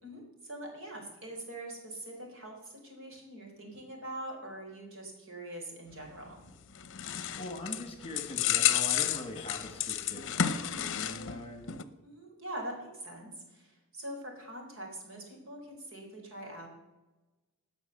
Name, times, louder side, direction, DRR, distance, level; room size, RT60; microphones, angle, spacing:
voice 1, 0.0-6.4 12.0-16.7, right 1 dB, 65° right, 1 dB, 4.1 m, -43 dB
sound 1, 6.5-11.4 11.7-11.8, left 10 dB, 60° left, 0.7 m, -31 dB
voice 2, 7.4-11.7, left 1 dB, 25° left, 5 dB, 1.9 m, -42 dB
18.5 x 6.3 x 6.9 m, 1.1 s
head